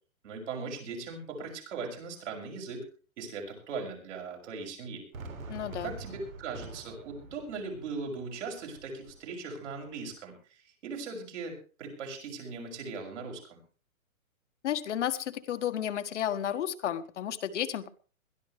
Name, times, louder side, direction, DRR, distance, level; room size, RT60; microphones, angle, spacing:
voice 1, 0.2-2.9 3.2-5.0 5.8-13.6, right 4 dB, 55° right, 1 dB, 6.3 m, -39 dB
Fireworks, 5.1-10.2, right 3 dB, 70° right, 3.6 m, -47 dB
voice 2, 5.5-5.9 14.6-17.9, left 10 dB, 55° left, 10 dB, 1.5 m, -32 dB
22.0 x 13.0 x 3.3 m, 0.37 s
hypercardioid pair, 150°, 43 cm